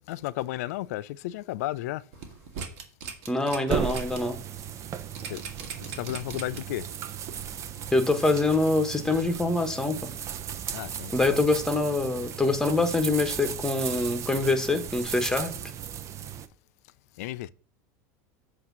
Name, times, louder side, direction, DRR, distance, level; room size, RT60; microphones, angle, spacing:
voice 1, 0.1-2.0 5.2-5.4 5.8-6.9 10.7-11.4 17.2-17.5, left 16 dB, 75° left, 0.4 m, -33 dB
sound 1, 2.1-4.2 4.6-4.7 5.2-6.8 7.3-7.4, right 6 dB, 70° right, 1.5 m, -39 dB
voice 2, 3.3-4.4 7.9-10.1 11.1-15.5, left 2 dB, 5° left, 1.1 m, -25 dB
sound 2, 3.7-16.5, right 9 dB, 35° right, 0.6 m, -36 dB
7.9 x 2.8 x 6.0 m
supercardioid pair, 110°, 8 cm